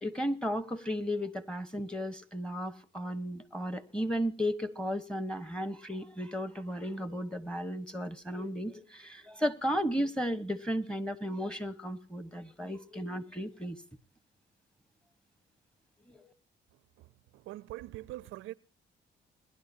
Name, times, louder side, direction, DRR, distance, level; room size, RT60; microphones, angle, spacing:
voice 1, 0.0-13.8 16.1-16.2, equal, 5° left, 1.2 m, -34 dB
voice 2, 17.0-18.5, right 16 dB, 85° right, 0.5 m, -44 dB
21.5 x 10.5 x 2.7 m
cardioid pair, 90°, 20 cm